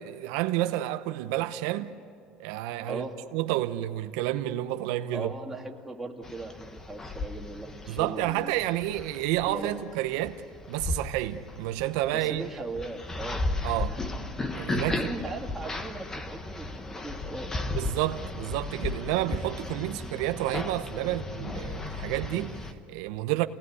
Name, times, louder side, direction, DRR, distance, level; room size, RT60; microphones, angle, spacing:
voice 1, 0.0-1.9 2.4-3.1 3.3-5.3 7.9-12.5 13.6-14.0 14.5-15.0 17.8-23.4, right 15 dB, 85° right, 0.9 m, -30 dB
voice 2, 5.1-8.6 9.5-9.8 12.1-13.4 13.8-14.0 14.9-17.6 21.0-21.2, right 2 dB, 10° right, 2.5 m, -38 dB
sound 1, 6.2-22.7, left 2 dB, 20° left, 1.4 m, -35 dB
29.5 x 18.5 x 9.7 m
cardioid pair, 135°, 3 cm